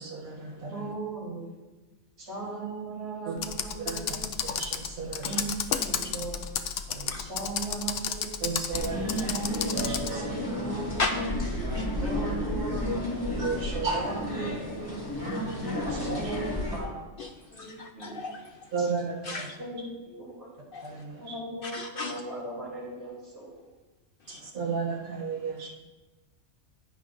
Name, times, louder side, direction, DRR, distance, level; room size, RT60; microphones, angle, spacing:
voice 1, 0.0-0.9 3.2-3.3 3.8-4.0 4.4-5.4 6.9-7.3 8.4-9.3 9.7-10.4 11.9-12.0 13.4-14.1 15.3-16.3 18.7-19.5 20.8-21.4 24.3-25.7, right 4 dB, 45° right, -3 dB, 1.5 m, -34 dB
voice 2, 0.7-1.6 2.2-4.4 5.2-6.5 7.2-8.5 9.2-11.0 12.0-13.2 13.9-15.4 16.1-17.0 17.5-18.2 18.8-18.9 19.6-20.5 21.2-23.6, right 3 dB, 65° right, -6 dB, 3.8 m, -38 dB
Computer keyboard, 3.4-10.2, left 8 dB, 90° left, 1.0 m, -32 dB
voice 3, 5.7-6.1 7.1-7.3 11.0-11.1 11.7-11.9 15.5-15.6 17.2-18.7 19.2-19.6 20.7-21.0 21.6-22.2 24.3-24.4, left 3 dB, 60° left, 5 dB, 0.6 m, -35 dB
dmv - waiting, 8.7-16.8, left 1 dB, 20° left, 2.1 m, -32 dB
11.0 x 9.8 x 2.6 m, 1.2 s
omnidirectional pair, 1.3 m